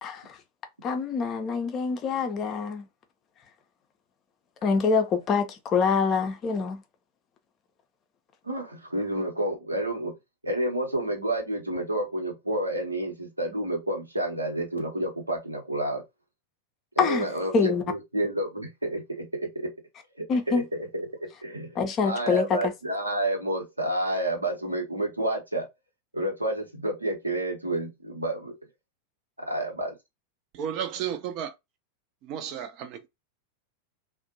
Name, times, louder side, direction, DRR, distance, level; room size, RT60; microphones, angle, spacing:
voice 1, 0.0-0.4 0.8-2.8 4.6-6.8 17.0-17.3 17.5-17.8 20.3-20.6 21.8-22.6, left 5 dB, 30° left, 0.5 m, -25 dB
voice 2, 8.4-10.1 10.4-16.0 17.0-19.7 20.2-25.6 26.1-28.5 29.4-29.9, right 1 dB, 85° right, 0.9 m, -30 dB
voice 3, 30.5-31.5 32.2-33.1, right 9 dB, 40° right, 0.5 m, -33 dB
2.4 x 2.1 x 2.6 m
figure-of-eight pair, 90°, 0 cm